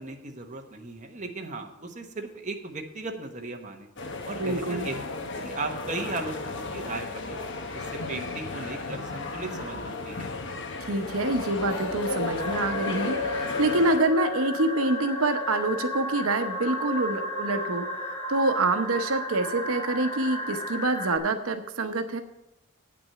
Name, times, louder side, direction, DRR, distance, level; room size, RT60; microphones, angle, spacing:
voice 1, 0.0-3.9 4.2-5.0 5.4-7.4 7.7-10.3, right 3 dB, 35° right, 3 dB, 1.1 m, -36 dB
sound 1, 4.0-14.0, left 3 dB, 60° left, 1.1 m, -34 dB
voice 2, 4.4-4.9 10.9-22.2, right 2 dB, 90° right, 7 dB, 0.8 m, -26 dB
sound 2, 12.4-21.2, left 1 dB, 25° left, 2.0 m, -33 dB
9.1 x 6.0 x 8.3 m, 0.89 s
head